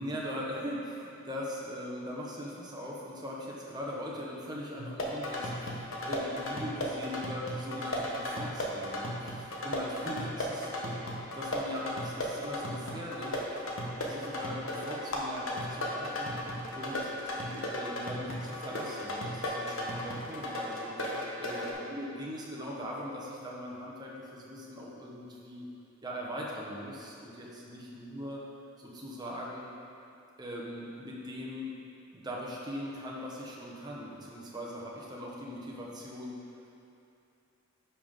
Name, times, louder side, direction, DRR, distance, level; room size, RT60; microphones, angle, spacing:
voice 1, 0.0-10.9 11.3-13.4 13.9-16.4 16.7-25.6 26.0-28.4 28.8-29.7 30.4-31.7 32.1-36.3, equal, 20° right, -4 dB, 1.1 m, -40 dB
sound 1, 4.8-21.7, left 1 dB, 75° left, 1.2 m, -36 dB
10.5 x 5.7 x 3.7 m, 2.7 s
head